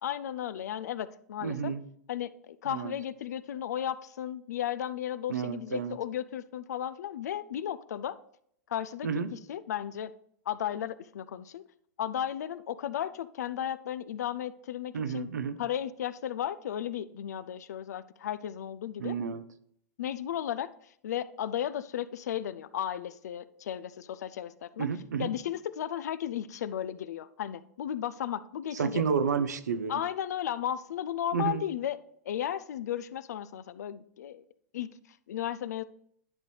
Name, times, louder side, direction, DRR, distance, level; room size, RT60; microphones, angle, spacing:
voice 1, 0.0-1.7 2.1-8.2 8.7-10.1 10.5-11.6 12.0-15.3 15.6-19.1 20.0-24.9 25.2-29.0 29.9-32.0 32.2-34.4 34.7-35.8, left 10 dB, 75° left, 16 dB, 0.4 m, -35 dB
voice 2, 1.4-1.8 2.7-3.0 5.3-6.0 9.0-9.4 14.9-15.6 19.0-19.5 24.8-25.3 28.7-30.0 31.3-31.6, right 6 dB, 85° right, 11 dB, 0.6 m, -31 dB
10.5 x 5.3 x 3.2 m, 0.68 s
hypercardioid pair, 105°, 9 cm